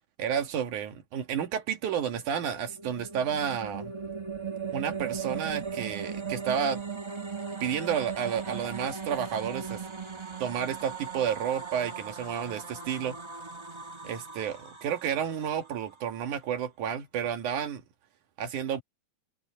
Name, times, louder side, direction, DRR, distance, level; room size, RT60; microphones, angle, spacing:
voice 1, 0.2-3.9 4.7-6.8 7.6-9.8 10.4-13.2 14.0-17.8 18.4-18.8, right 8 dB, 90° right, 3.2 m, -31 dB
sound 1, 2.5-15.8, right 6 dB, 35° right, 0.4 m, -38 dB
omnidirectional pair, 3.4 m